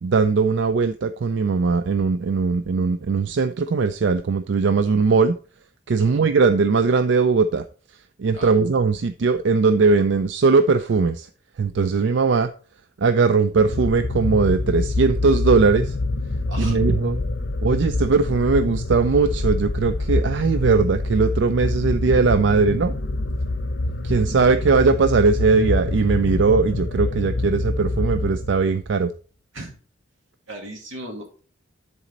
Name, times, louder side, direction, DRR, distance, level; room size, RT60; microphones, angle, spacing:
voice 1, 0.0-5.4 5.9-7.6 8.2-11.3 11.6-12.5 13.0-15.9 16.6-17.2 17.6-22.9 24.0-29.1, right 4 dB, 65° right, 11 dB, 0.4 m, -19 dB
voice 2, 6.0-6.3 8.3-8.5 16.5-16.8 29.5-29.8 30.5-31.4, right 1 dB, 85° right, 2 dB, 2.2 m, -37 dB
sound 1, 13.5-28.9, left 2 dB, 60° left, 0.6 m, -25 dB
10.5 x 4.1 x 3.9 m, 0.39 s
head